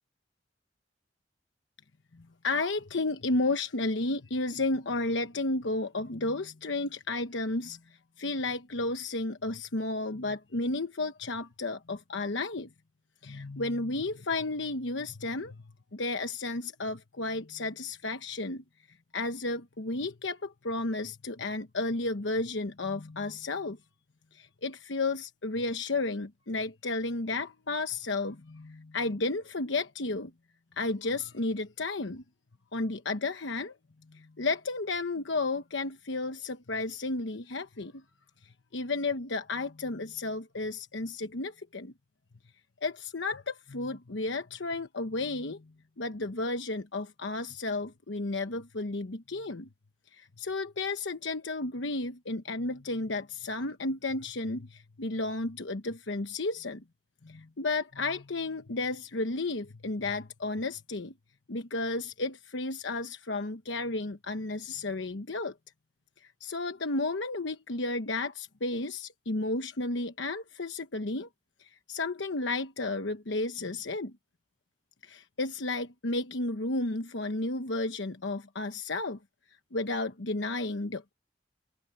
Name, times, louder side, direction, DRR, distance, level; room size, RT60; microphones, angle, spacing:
voice 1, 2.1-12.7 13.2-15.6 15.9-18.6 19.1-23.8 24.3-30.3 30.8-32.2 32.7-33.7 34.1-38.0 38.4-41.9 42.8-49.7 50.1-56.8 57.2-61.1 61.5-65.5 66.2-71.3 71.6-74.1 75.0-79.2 79.7-81.1, left 2 dB, 85° left, 1.1 m, -33 dB
head